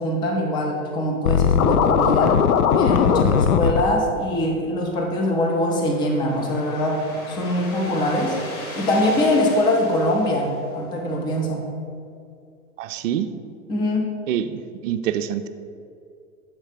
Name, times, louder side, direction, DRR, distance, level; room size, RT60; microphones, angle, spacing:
voice 1, 0.0-2.4 2.7-8.4 8.8-11.7 13.7-14.1, left 1 dB, 10° left, 1 dB, 0.4 m, -23 dB
Scratching (performance technique), 1.2-3.8, left 7 dB, 80° left, 0.5 m, -18 dB
sound 1, 4.9-11.2, left 2 dB, 40° left, 1.3 m, -39 dB
voice 2, 12.8-13.3 14.3-15.5, right 10 dB, 60° right, 8 dB, 0.5 m, -26 dB
7.4 x 3.2 x 5.1 m, 2.4 s
hypercardioid pair, 120°, 44 cm